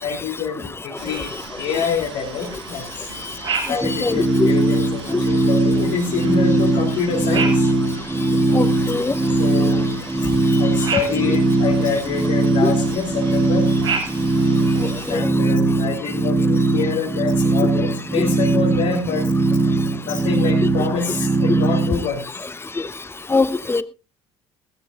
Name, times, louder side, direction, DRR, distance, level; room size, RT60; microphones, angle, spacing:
voice 1, 0.0-2.8 3.7-7.7 9.4-10.0 10.6-13.7 15.1-19.3 20.1-22.2, left 5 dB, 65° left, -1 dB, 4.0 m, -26 dB
sound 1, 0.9-15.2, right 5 dB, 85° right, 6.4 m, -33 dB
voice 2, 3.7-4.5 8.5-9.1 12.6-12.7 15.1-15.2 22.8-22.9 23.3-23.8, left 3 dB, 15° left, 14 dB, 1.1 m, -22 dB
sound 2, 3.8-22.0, right 2 dB, 20° right, 1.8 m, -20 dB
19.5 x 14.5 x 2.5 m, 0.29 s
hypercardioid pair, 55°, 14 cm